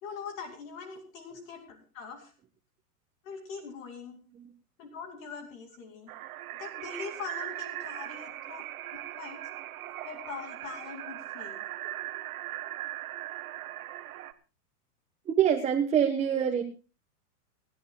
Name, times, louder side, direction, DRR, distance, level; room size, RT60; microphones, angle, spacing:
voice 1, 0.0-2.3 3.2-4.2 4.8-6.1 6.6-8.6 8.9-9.5 10.0-11.6, left 5 dB, 55° left, 4 dB, 2.8 m, -42 dB
sound 1, 6.1-14.3, right 14 dB, 60° right, 1.5 m, -39 dB
voice 2, 15.3-16.6, right 9 dB, 15° right, 3 dB, 1.2 m, -25 dB
29.0 x 11.0 x 2.3 m, 0.33 s
hypercardioid pair, 145°, 47 cm